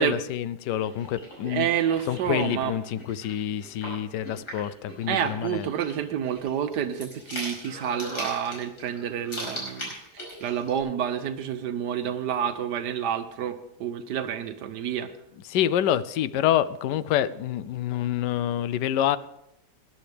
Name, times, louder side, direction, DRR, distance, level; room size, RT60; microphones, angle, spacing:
voice 1, 0.0-1.7 2.1-5.7 15.5-19.2, left 11 dB, 90° left, 16 dB, 1.2 m, -27 dB
sound 1, 0.8-10.8, left 1 dB, 70° left, 5.6 m, -40 dB
voice 2, 1.5-2.7 5.1-15.1, right 9 dB, 80° right, 9 dB, 1.3 m, -29 dB
18.5 x 11.0 x 3.4 m, 0.80 s
omnidirectional pair, 1.8 m